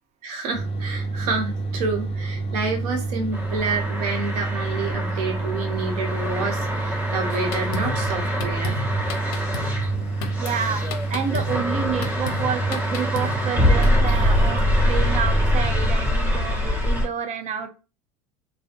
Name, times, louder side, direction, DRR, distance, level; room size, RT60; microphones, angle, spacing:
voice 1, 0.2-8.8, right 4 dB, 80° right, 4 dB, 0.9 m, -29 dB
sound 1, 0.5-15.9, right 3 dB, 30° left, 0.6 m, -28 dB
sound 2, 3.3-17.1, left 1 dB, 10° right, 1.0 m, -25 dB
Drum kit, 7.3-14.5, left 1 dB, 70° left, 0.6 m, -32 dB
voice 2, 10.4-10.8 11.1-17.7, right 7 dB, 35° right, 7 dB, 0.6 m, -29 dB
2.6 x 2.1 x 2.5 m, 0.32 s
supercardioid pair, 100°, 20 cm